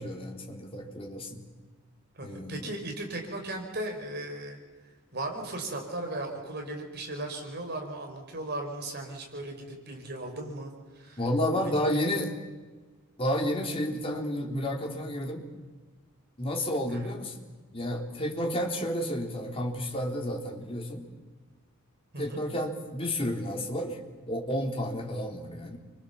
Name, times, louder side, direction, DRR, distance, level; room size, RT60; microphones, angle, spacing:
voice 1, 0.0-1.5 2.2-2.7 11.2-12.3 13.2-15.5 16.4-17.4 17.7-21.1 22.2-24.0 24.3-25.8, equal, 25° left, 1 dB, 3.7 m, -31 dB
voice 2, 2.1-4.6 5.1-11.2 11.9-12.0 16.9-17.2 22.1-22.4, right 2 dB, 50° right, 3 dB, 5.0 m, -37 dB
29.5 x 25.0 x 7.2 m, 1.3 s
head